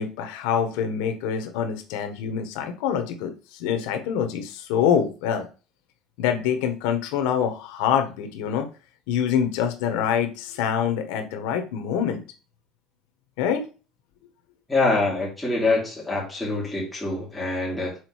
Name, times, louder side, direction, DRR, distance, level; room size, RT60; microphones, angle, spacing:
voice 1, 0.0-5.5 6.2-8.7 9.1-12.2 13.4-13.7, left 8 dB, 90° left, 1.3 m, -25 dB
voice 2, 14.7-18.0, left 3 dB, 5° left, 2.9 m, -25 dB
6.4 x 4.3 x 4.7 m
cardioid pair, 175°, 0 cm